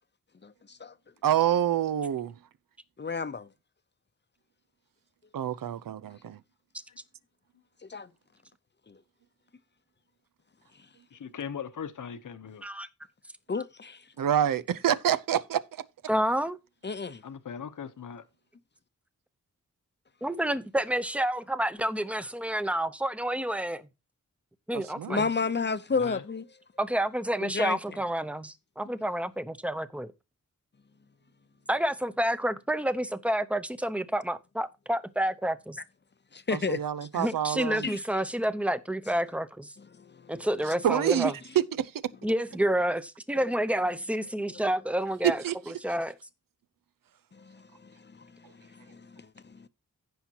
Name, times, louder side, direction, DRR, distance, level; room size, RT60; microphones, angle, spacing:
voice 1, 0.4-0.9 3.0-3.5 7.9-8.1 8.9-9.0 13.5-14.0 16.8-17.2 25.1-26.4 27.4-27.8 36.3-36.8 37.1-37.2 37.8-38.0 40.0-40.3 47.5-47.9 48.9-49.2, left 4 dB, 35° left, 0.7 m, -31 dB
voice 2, 1.2-2.4 5.3-6.4 14.2-15.8 24.7-25.3 36.5-37.9 40.8-41.9 45.2-45.6, right 10 dB, 90° right, 0.7 m, -27 dB
voice 3, 11.1-12.6 17.2-18.2 25.9-26.2, left 7 dB, 70° left, 0.9 m, -39 dB
voice 4, 16.1-16.6 20.2-23.8 24.7-25.2 26.8-30.1 31.7-35.8 37.1-39.7 40.3-41.3 42.2-46.1, right 1 dB, 5° right, 0.7 m, -29 dB
16.0 x 5.8 x 2.9 m
wide cardioid pair, 105°, 32 cm